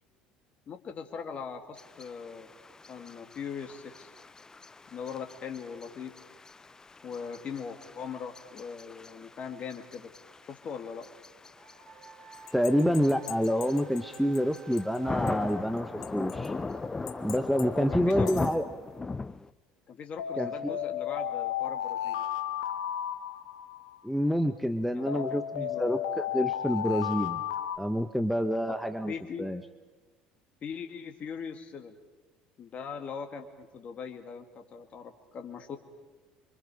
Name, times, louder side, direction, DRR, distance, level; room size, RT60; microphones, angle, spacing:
voice 1, 0.7-2.5 2.9-4.1 4.9-6.1 7.0-10.1 10.5-11.1 17.8-18.5 19.9-22.2 24.9-25.9 28.7-28.8 29.1-29.5 30.6-31.9 32.6-35.8, left 6 dB, 45° left, 4 dB, 2.4 m, -40 dB
sound 1, 1.8-19.5, left 3 dB, 20° left, 0.7 m, -40 dB
sound 2, 11.6-18.6, right 5 dB, 55° right, 4.1 m, -52 dB
sound 3, 12.5-14.4 14.8-14.9 15.3-15.4 16.0-16.5 17.1-17.6 18.1-18.5 20.2-23.9 25.1-27.8, left 10 dB, 80° left, 1.4 m, -33 dB
voice 2, 12.5-16.5 17.2-18.7 20.4-20.8 24.0-27.4 27.8-29.1 29.4-29.6, equal, ahead, 8 dB, 1.2 m, -28 dB
26.0 x 25.0 x 5.0 m, 1.3 s
hypercardioid pair, 70°, 3 cm